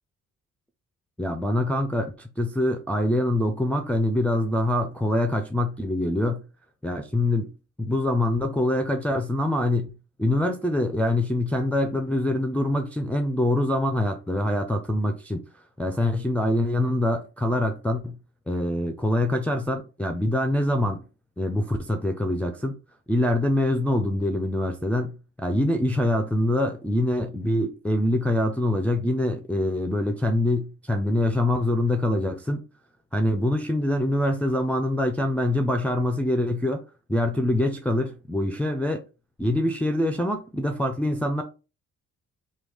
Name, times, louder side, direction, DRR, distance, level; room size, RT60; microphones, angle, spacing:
voice 1, 1.2-6.4 6.8-7.5 7.8-15.5 15.8-18.2 18.5-21.1 21.4-22.8 23.1-32.6 33.1-36.8 37.1-39.0 39.4-41.4, left 1 dB, 5° left, 0.4 m, -24 dB
3.1 x 2.2 x 3.4 m
cardioid pair, 90°, 30 cm